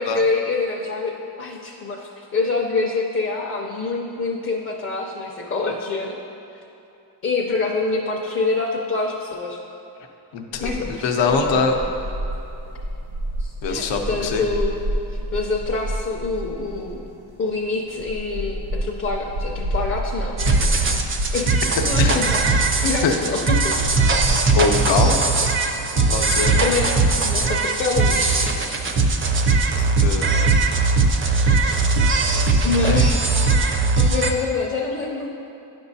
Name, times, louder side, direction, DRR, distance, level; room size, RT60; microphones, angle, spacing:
voice 1, 0.0-6.2 7.2-9.6 10.6-11.6 13.4-14.8 15.1-17.0 17.4-20.4 21.3-21.5 21.8-22.4 22.8-23.8 26.6-28.6 32.6-33.2 34.0-35.3, left 3 dB, 30° left, -3 dB, 0.5 m, -26 dB
voice 2, 10.3-11.8 13.6-14.4 22.0-22.1 23.0-23.1 24.6-25.3 25.9-26.6 29.7-30.4 32.8-33.1, left 4 dB, 80° left, 3 dB, 0.7 m, -23 dB
sound 1, 10.5-30.1, right 1 dB, 90° right, 1.3 m, -30 dB
sound 2, 20.4-34.3, right 3 dB, 30° right, 0.4 m, -19 dB
9.9 x 6.1 x 2.7 m, 2.8 s
wide cardioid pair, 140°, 45 cm